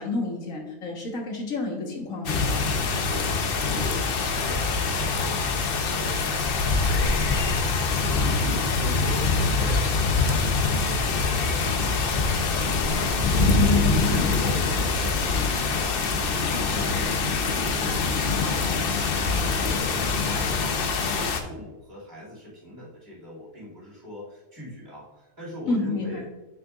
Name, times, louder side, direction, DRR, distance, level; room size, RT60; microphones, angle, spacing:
voice 1, 0.0-2.4 25.7-26.2, left 2 dB, 65° left, 1 dB, 1.7 m, -30 dB
sound 1, 2.3-21.4, left 4 dB, 50° left, 0.8 m, -24 dB
voice 2, 2.6-3.3 3.8-7.2 8.3-16.3 16.7-18.8 19.5-20.7 21.0-26.3, equal, 45° right, -5 dB, 2.7 m, -41 dB
7.2 x 6.7 x 2.4 m, 1.1 s
omnidirectional pair, 1.5 m